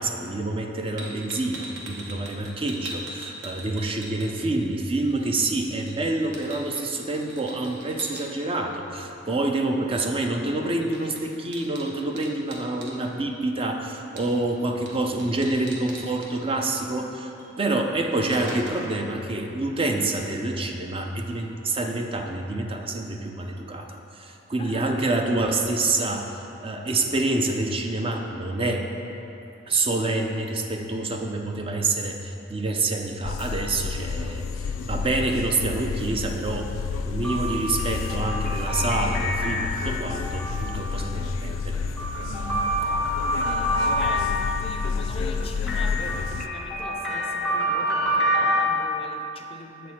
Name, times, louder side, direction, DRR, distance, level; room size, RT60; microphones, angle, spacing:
voice 1, 0.0-28.9 29.7-36.7 37.0-41.8, right 2 dB, 30° right, 3 dB, 0.5 m, -27 dB
sound 1, 1.0-4.7 5.0-8.3 10.4-10.6 10.8-13.0 14.2-14.5 14.9-15.0 15.2-16.3 17.4-17.5 17.9-19.0, right 1 dB, 65° right, 0.9 m, -40 dB
voice 2, 24.6-24.9 42.2-42.6 43.3-49.9, left 2 dB, 30° left, 3 dB, 0.5 m, -39 dB
sound 2, 33.2-46.5, left 5 dB, 90° left, 0.3 m, -30 dB
sound 3, 37.2-41.0 41.7-44.8 45.7-48.7, equal, ahead, 0.8 m, -27 dB
7.3 x 4.5 x 4.3 m, 2.9 s
head